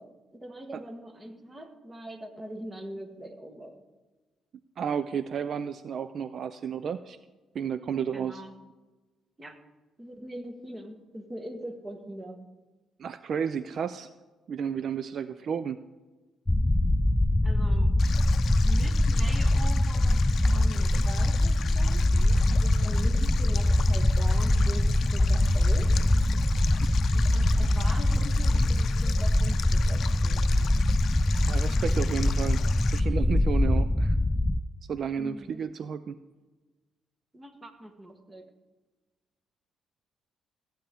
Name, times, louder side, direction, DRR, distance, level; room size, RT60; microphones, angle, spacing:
voice 1, 0.0-3.8 8.1-8.6 9.4-9.6 10.0-12.4 17.4-17.9 18.6-20.2 20.5-25.9 27.1-30.8 35.2-35.7 37.3-38.5, right 1 dB, 20° right, 6 dB, 1.4 m, -42 dB
voice 2, 4.8-7.2 7.5-8.4 13.0-14.1 14.5-15.8 26.8-26.9 31.4-32.6 32.9-34.2 34.9-36.2, right 7 dB, 60° right, 13 dB, 0.4 m, -32 dB
sound 1, 16.5-34.6, left 1 dB, 15° left, 0.4 m, -23 dB
Stream, 18.0-33.0, left 8 dB, 65° left, 0.5 m, -40 dB
15.0 x 8.9 x 3.5 m, 1.2 s
cardioid pair, 90°, 0 cm